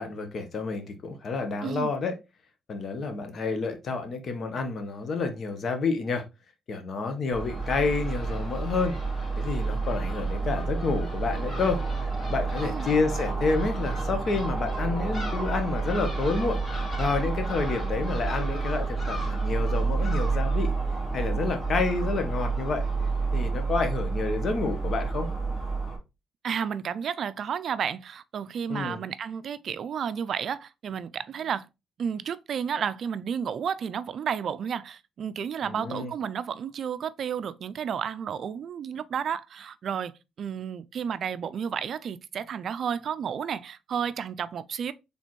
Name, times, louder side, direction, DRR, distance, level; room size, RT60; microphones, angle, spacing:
voice 1, 0.0-2.1 2.7-6.2 6.7-9.0 9.4-20.7 21.1-22.8 23.3-25.3 28.7-29.0 35.6-36.1, left 4 dB, 55° left, 1.0 m, -29 dB
voice 2, 1.6-1.9 12.6-12.9 26.4-31.7 32.0-40.1 40.4-44.9, right 7 dB, 60° right, 0.3 m, -32 dB
Crow / Gull seagull, 7.3-26.0, right 4 dB, 25° left, 2.6 m, -29 dB
4.2 x 3.5 x 3.1 m
cardioid pair, 90°, 0 cm